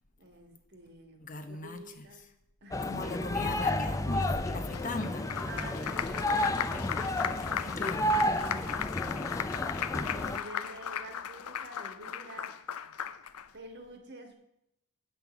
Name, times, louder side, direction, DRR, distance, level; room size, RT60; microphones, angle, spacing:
voice 1, 0.2-2.3 2.6-2.9 5.5-7.9 8.2-9.2 9.9-12.6 13.5-14.3, right 1 dB, 50° right, 5 dB, 1.7 m, -49 dB
voice 2, 1.2-2.1 2.8-5.3 7.6-8.2, left 3 dB, 35° left, 6 dB, 0.8 m, -39 dB
sound 1, 2.7-10.4, left 1 dB, 15° left, 0.4 m, -31 dB
Applause, 4.7-13.5, left 8 dB, 85° left, 0.6 m, -36 dB
8.8 x 5.7 x 7.0 m, 0.81 s
head